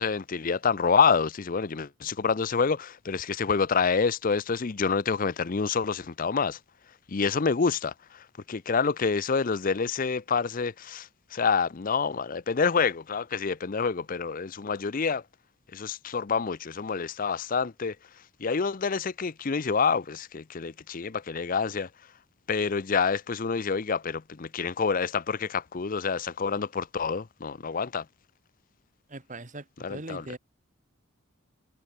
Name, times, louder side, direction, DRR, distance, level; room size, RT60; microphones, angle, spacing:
voice 1, 0.0-6.6 7.1-7.9 8.5-15.2 15.7-17.9 18.4-21.9 22.5-28.0 29.8-30.2, left 5 dB, 40° left, 0.5 m, -27 dB
voice 2, 29.1-30.4, right 2 dB, 35° right, 1.7 m, -40 dB
head